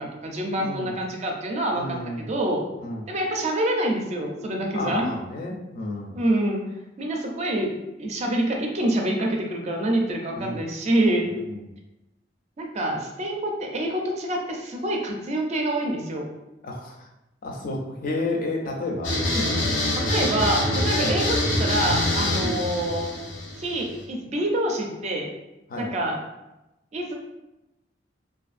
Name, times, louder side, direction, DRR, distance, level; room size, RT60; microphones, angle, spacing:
voice 1, 0.0-2.6 3.1-5.1 6.1-6.6 7.0-7.7 8.0-11.3 12.6-16.3 20.1-23.1 23.5-25.3 25.8-26.2 26.9-27.1, right 1 dB, 35° right, 1 dB, 0.4 m, -26 dB
voice 2, 0.6-1.0 1.7-2.3 2.8-3.1 4.7-6.1 10.3-10.6 11.4-11.6 16.6-17.1 17.4-19.5 20.9-21.2 22.4-22.6 25.7-25.9, left 2 dB, 50° left, 1 dB, 0.4 m, -31 dB
sound 1, 19.0-24.0, left 1 dB, 85° left, 0.7 m, -25 dB
2.5 x 2.4 x 2.4 m, 0.95 s
head